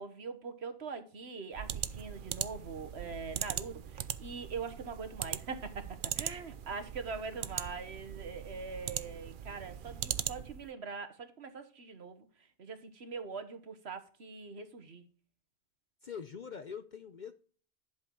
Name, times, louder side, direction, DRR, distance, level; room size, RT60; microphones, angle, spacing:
voice 1, 0.0-12.3 12.6-15.0, right 4 dB, 70° right, 1.5 m, -43 dB
sound 1, 1.5-10.7, right 9 dB, 55° right, 0.7 m, -40 dB
voice 2, 16.0-17.3, left 7 dB, 50° left, 0.7 m, -43 dB
11.5 x 7.1 x 3.9 m
omnidirectional pair, 1.1 m